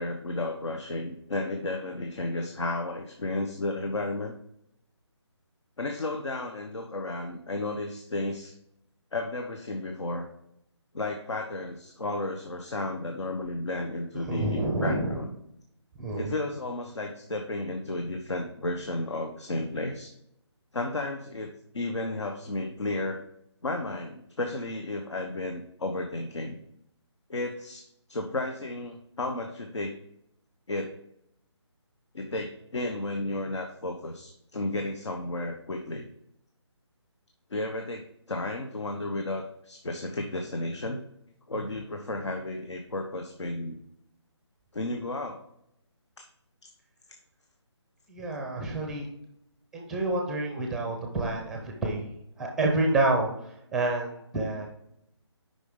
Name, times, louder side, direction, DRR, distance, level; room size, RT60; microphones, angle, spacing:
voice 1, 0.0-4.4 5.8-8.5 9.1-10.3 10.9-15.3 16.2-20.1 20.7-23.2 23.6-26.6 27.3-30.0 30.7-31.0 32.1-36.1 37.5-41.0 41.5-43.8 44.7-45.4, left 2 dB, 75° left, 3 dB, 1.0 m, -33 dB
voice 2, 14.2-15.2 16.0-16.3 48.1-49.1 49.7-53.3 53.7-54.7, right 2 dB, 5° right, 1 dB, 0.6 m, -28 dB
8.2 x 5.4 x 3.7 m, 0.76 s
figure-of-eight pair, 160°, 15 cm